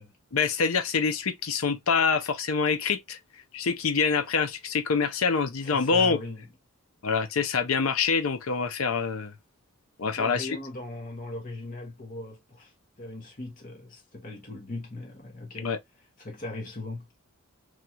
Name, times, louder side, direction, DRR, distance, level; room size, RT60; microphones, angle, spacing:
voice 1, 0.3-3.2 3.5-6.2 7.0-9.3 10.0-10.5 15.6-15.8, left 5 dB, 70° left, 0.6 m, -25 dB
voice 2, 5.6-6.5 10.2-12.7 13.0-15.7 16.2-17.1, left 2 dB, 35° left, 0.9 m, -39 dB
3.1 x 2.3 x 2.8 m
head